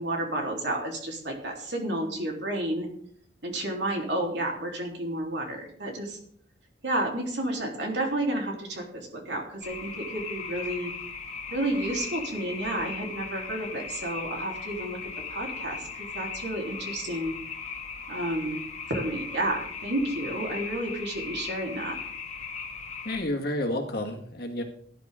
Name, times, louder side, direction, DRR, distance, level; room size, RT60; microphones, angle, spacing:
voice 1, 0.0-2.9 3.4-6.2 6.8-10.9 11.5-17.3 18.1-18.6 18.9-22.0, right 1 dB, 65° right, 0 dB, 3.7 m, -31 dB
sound 1, 9.6-23.2, left 5 dB, 35° left, 1.9 m, -38 dB
voice 2, 23.0-24.6, left 1 dB, 55° left, 2 dB, 2.0 m, -30 dB
17.5 x 11.5 x 3.8 m, 0.62 s
head